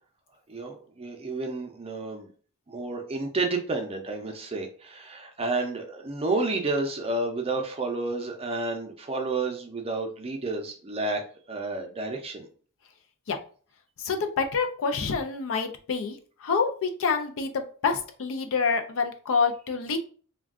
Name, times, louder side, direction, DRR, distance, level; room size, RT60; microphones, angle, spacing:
voice 1, 0.5-2.3 2.7-11.2 11.5-12.5, right 3 dB, 25° right, 3 dB, 0.5 m, -30 dB
voice 2, 14.0-20.0, left 5 dB, 65° left, 6 dB, 0.4 m, -27 dB
2.4 x 2.2 x 3.5 m, 0.42 s
head